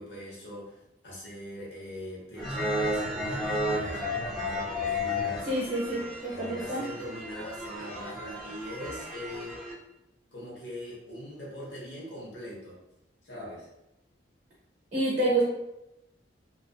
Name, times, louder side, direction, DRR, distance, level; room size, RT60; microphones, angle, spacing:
voice 1, 0.0-5.5 6.3-9.6 10.3-12.8 13.2-13.7, equal, 70° left, -5 dB, 1.0 m, -41 dB
sound 1, 2.4-9.7, left 1 dB, 5° left, 0.4 m, -33 dB
voice 2, 5.5-6.8 14.9-15.4, right 1 dB, 40° right, -5 dB, 0.6 m, -28 dB
2.4 x 2.3 x 2.3 m, 0.90 s
head